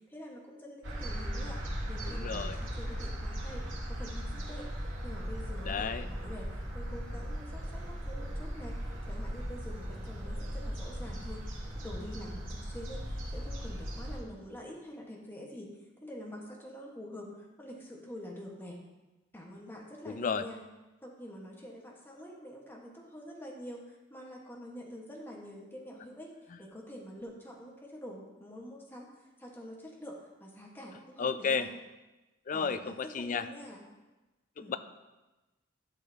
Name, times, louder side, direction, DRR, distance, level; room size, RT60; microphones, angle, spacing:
voice 1, 0.0-1.6 1.9-4.7 5.0-8.8 9.1-11.4 11.7-15.7 16.0-18.8 19.3-20.6 21.0-26.3 26.6-31.7 32.5-33.8 34.6-34.8, equal, 10° left, -2 dB, 1.4 m, -46 dB
sound 1, 0.8-14.2, equal, 80° right, 2.3 m, -38 dB
voice 2, 2.1-2.6 5.6-6.1 20.1-20.4 31.2-31.7 32.5-33.5 34.6-34.8, left 5 dB, 45° left, 12 dB, 0.4 m, -32 dB
12.0 x 6.7 x 2.8 m, 1.1 s
head